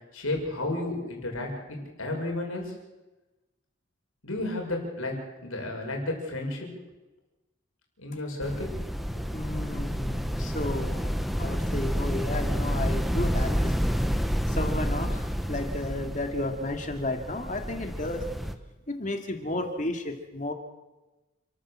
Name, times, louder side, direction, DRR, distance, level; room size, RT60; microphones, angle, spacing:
voice 1, 0.1-2.7 4.2-5.2 5.4-6.7 8.0-8.7 9.0-9.3, left 2 dB, 90° left, 1 dB, 6.3 m, -32 dB
sound 1, 8.4-18.5, equal, ahead, 1.0 m, -29 dB
voice 2, 9.3-11.1 11.4-14.1 14.5-18.3 18.9-20.5, left 2 dB, 35° left, 5 dB, 2.5 m, -33 dB
29.0 x 13.5 x 7.5 m, 1.1 s
head